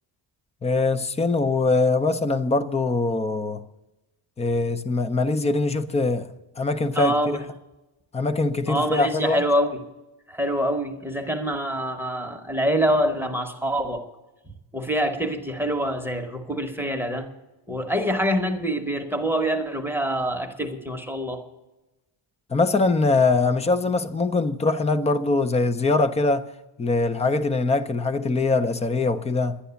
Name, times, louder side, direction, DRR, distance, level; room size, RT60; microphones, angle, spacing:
voice 1, 0.6-3.6 4.4-6.3 6.6-7.4 8.1-9.4 22.5-26.5 26.8-29.6, left 3 dB, 15° left, 0.4 m, -22 dB
voice 2, 7.0-7.4 8.7-9.8 10.3-14.0 14.7-17.3 17.7-21.4, equal, 5° right, 0.8 m, -25 dB
11.5 x 10.0 x 6.8 m
cardioid pair, 165°, 47 cm